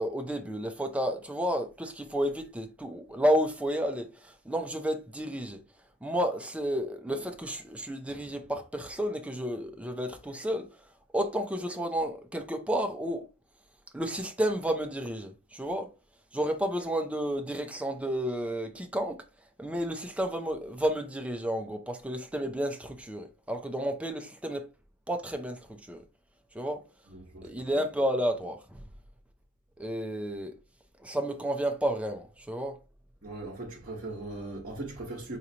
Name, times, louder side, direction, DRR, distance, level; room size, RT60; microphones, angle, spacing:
voice 1, 0.0-5.6 6.0-10.8 11.1-13.3 13.9-15.9 16.3-19.2 19.6-24.7 25.1-26.0 26.5-26.8 27.4-28.9 29.8-30.6 31.0-32.8, equal, 5° right, 0.5 m, -31 dB
voice 2, 27.1-27.5 33.2-35.4, right 2 dB, 40° right, 1.1 m, -39 dB
5.0 x 2.8 x 2.8 m
head